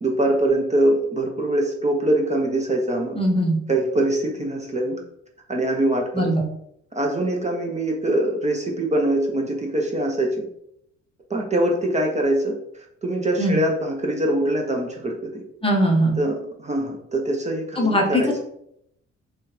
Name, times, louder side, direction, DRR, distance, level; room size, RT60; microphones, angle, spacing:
voice 1, 0.0-3.2 3.7-5.0 5.5-6.3 6.9-10.5 11.3-15.4 16.2-18.4, right 1 dB, 25° right, 1 dB, 0.7 m, -23 dB
voice 2, 3.2-3.6 6.1-6.4 13.4-13.6 15.6-16.1 17.8-18.2, equal, 20° left, 1 dB, 0.7 m, -20 dB
4.3 x 2.3 x 3.2 m, 0.74 s
cardioid pair, 90°, 30 cm